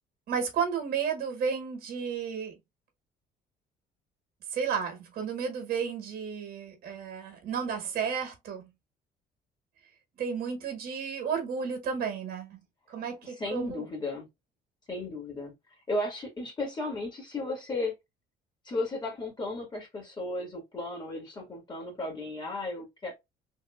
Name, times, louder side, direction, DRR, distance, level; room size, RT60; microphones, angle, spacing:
voice 1, 0.3-2.5 4.5-8.7 10.2-12.6 12.9-13.8, right 6 dB, 70° right, 1.5 m, -32 dB
voice 2, 13.2-14.3 14.9-15.5 15.9-17.9 18.6-23.1, left 2 dB, 25° left, 1.8 m, -34 dB
3.6 x 2.6 x 2.3 m
cardioid pair, 110°, 17 cm